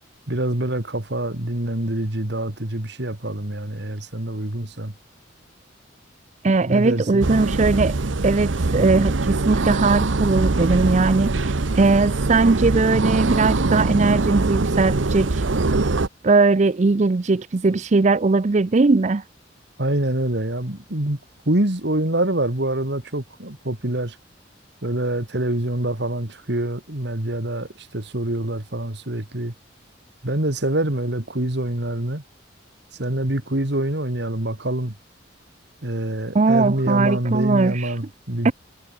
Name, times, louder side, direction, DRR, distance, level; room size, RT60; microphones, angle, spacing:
voice 1, 0.3-4.9 6.7-7.3 19.8-21.2 21.5-24.2 24.8-29.5 30.2-32.2 33.0-34.9 35.8-38.5, right 1 dB, 60° right, 2.6 m, -25 dB
voice 2, 6.4-8.0 8.2-15.5 16.2-19.2 36.3-38.0 38.4-38.5, right 3 dB, 40° right, 0.5 m, -19 dB
sound 1, 7.2-16.1, right 3 dB, 85° right, 0.9 m, -22 dB
head